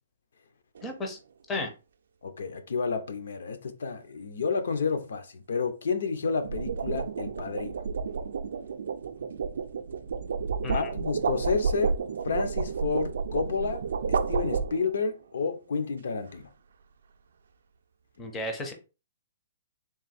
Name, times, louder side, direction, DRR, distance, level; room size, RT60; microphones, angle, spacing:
voice 1, 0.8-1.2 1.5-1.7 10.6-10.9 18.2-18.7, left 2 dB, 10° left, 0.4 m, -33 dB
sound 1, 0.8-1.1 6.2-15.1, right 5 dB, 65° right, 0.4 m, -31 dB
voice 2, 2.2-7.8 10.7-11.9 12.2-13.8 14.1-16.5, left 5 dB, 70° left, 0.6 m, -30 dB
3.6 x 2.5 x 4.1 m
hypercardioid pair, 180°, 0 cm